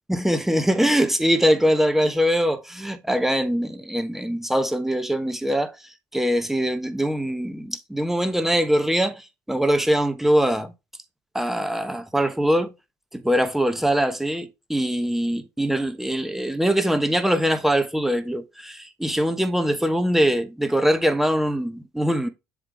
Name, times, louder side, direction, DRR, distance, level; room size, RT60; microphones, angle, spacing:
voice 1, 0.1-5.7 6.1-10.7 11.3-12.7 13.1-22.3, equal, 5° right, 1.2 m, -22 dB
7.4 x 3.4 x 4.7 m
figure-of-eight pair, 55°, 8 cm